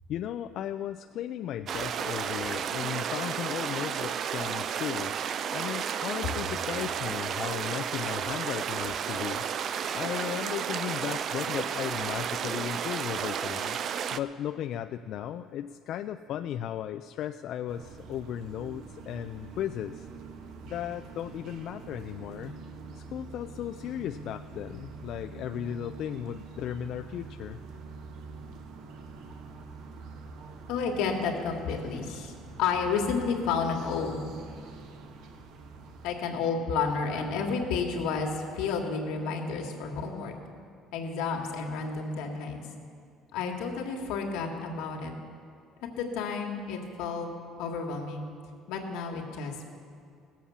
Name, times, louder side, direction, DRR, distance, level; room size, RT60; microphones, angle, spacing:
voice 1, 0.1-5.1 5.5-9.4 9.9-13.8 14.1-20.1 20.7-22.5 22.9-27.6, left 10 dB, 55° left, 7 dB, 0.3 m, -36 dB
sound 1, 1.7-14.2, right 8 dB, 45° right, 0.4 m, -32 dB
sound 2, 17.7-36.2, right 4 dB, 65° right, 1.1 m, -45 dB
voice 2, 30.7-34.2 36.0-40.3 40.9-42.7 43.3-45.2 45.8-47.3 47.6-48.3 48.7-49.6, left 5 dB, 85° left, 2 dB, 1.8 m, -31 dB
17.5 x 7.3 x 7.1 m, 2.4 s
cardioid pair, 140°, 0 cm